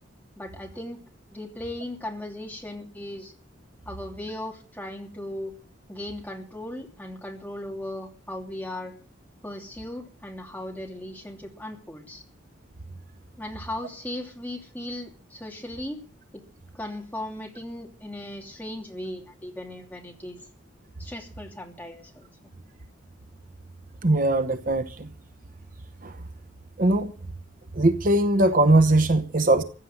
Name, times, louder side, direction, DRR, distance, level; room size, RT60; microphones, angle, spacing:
voice 1, 0.4-1.0 1.3-3.3 3.8-5.5 5.9-8.9 9.4-12.2 13.4-16.0 16.3-16.4 16.7-20.4 21.0-22.3, left 1 dB, 10° left, 3.0 m, -37 dB
voice 2, 24.0-25.1 26.0-26.2 26.8-27.1 27.7-29.6, right 2 dB, 45° right, 0.9 m, -20 dB
15.5 x 9.4 x 7.8 m
head